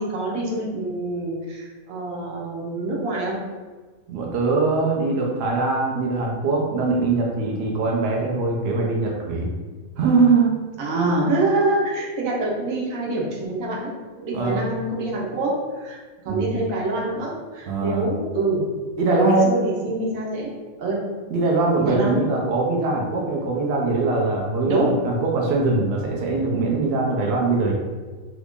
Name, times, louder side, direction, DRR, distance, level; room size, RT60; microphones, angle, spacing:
voice 1, 0.0-3.3 10.8-13.9 14.2-16.0 16.2-18.7 19.1-20.5 20.8-21.0 21.8-22.3 24.7-24.9, right 2 dB, 75° right, -4 dB, 1.2 m, -25 dB
voice 2, 4.1-9.5 10.0-10.6 14.3-14.7 16.3-16.5 17.7-18.1 19.0-19.5 21.3-27.7, right 3 dB, 60° right, -1 dB, 0.7 m, -22 dB
2.9 x 2.5 x 3.5 m, 1.4 s
omnidirectional pair, 1.4 m